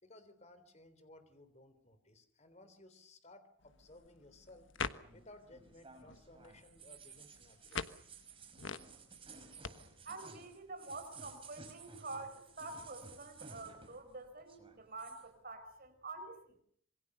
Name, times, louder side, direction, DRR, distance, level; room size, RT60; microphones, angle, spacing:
voice 1, 0.0-4.7 5.1-7.9, left 2 dB, 35° left, 10 dB, 3.6 m, -59 dB
sound 1, 3.6-9.7, left 5 dB, 70° left, 1.3 m, -46 dB
sound 2, 5.0-14.1 14.4-15.3, right 4 dB, 25° right, 5.6 m, -55 dB
voice 2, 10.0-16.6, right 3 dB, 50° right, 8 dB, 4.8 m, -47 dB
27.0 x 22.5 x 6.7 m, 0.64 s
head